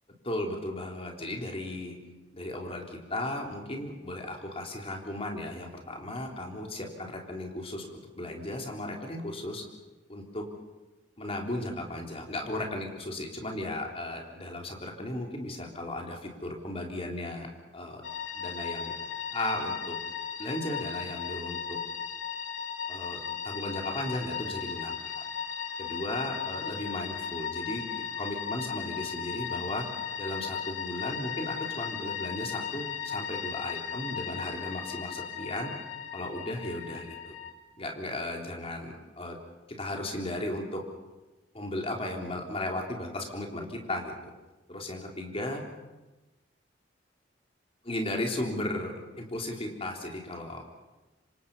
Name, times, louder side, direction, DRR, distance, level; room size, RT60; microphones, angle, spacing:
voice 1, 0.2-2.0 2.3-9.6 10.1-10.4 11.2-17.5 17.7-18.0 18.3-18.9 19.3-20.0 20.4-21.8 22.9-24.9 25.8-27.8 28.2-29.8 30.2-35.7 36.1-37.4 37.8-39.4 39.7-40.8 41.5-44.3 44.7-45.6 47.8-50.7, left 1 dB, 30° left, 1 dB, 3.7 m, -35 dB
sound 1, 18.0-37.5, left 7 dB, 75° left, 2.9 m, -36 dB
27.0 x 25.5 x 5.6 m, 1.1 s
head